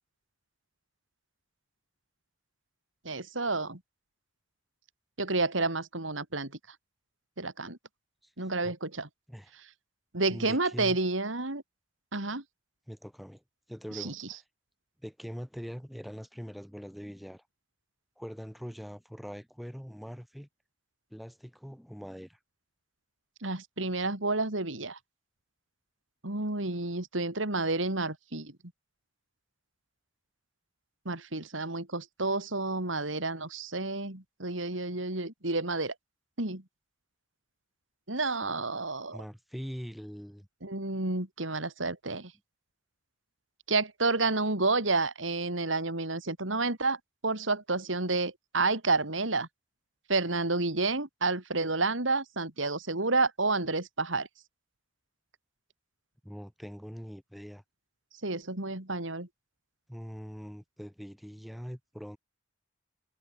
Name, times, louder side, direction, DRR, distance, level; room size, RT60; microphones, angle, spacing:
voice 1, 3.1-3.8 5.2-6.5 7.4-7.8 8.4-9.1 10.1-11.6 12.1-12.4 13.9-14.1 23.4-25.0 26.2-28.5 31.1-35.9 36.4-36.6 38.1-39.2 40.6-42.3 43.7-47.0 47.2-49.5 50.1-54.3 58.2-59.3, right 3 dB, 85° right, 3.8 m, -30 dB
voice 2, 8.4-8.7 9.3-9.5 10.3-11.0 12.9-13.4 13.7-14.4 15.0-17.4 18.2-20.5 21.1-22.4 39.1-40.5 56.2-57.6 59.9-62.2, equal, ahead, 5.2 m, -42 dB
head